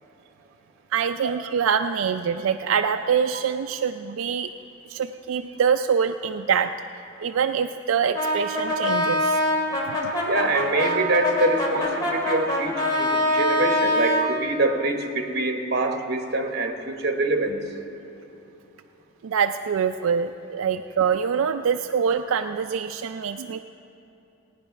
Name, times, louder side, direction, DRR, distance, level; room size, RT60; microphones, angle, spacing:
voice 1, 0.9-4.5 4.9-6.8 7.2-9.4 9.8-10.1 19.2-23.6, right 7 dB, 85° right, 7 dB, 0.4 m, -25 dB
Brass instrument, 8.1-14.3, left 1 dB, 20° left, 2.1 m, -24 dB
voice 2, 10.3-17.6, right 2 dB, 50° right, 4 dB, 1.1 m, -25 dB
17.0 x 9.9 x 5.8 m, 2.8 s
head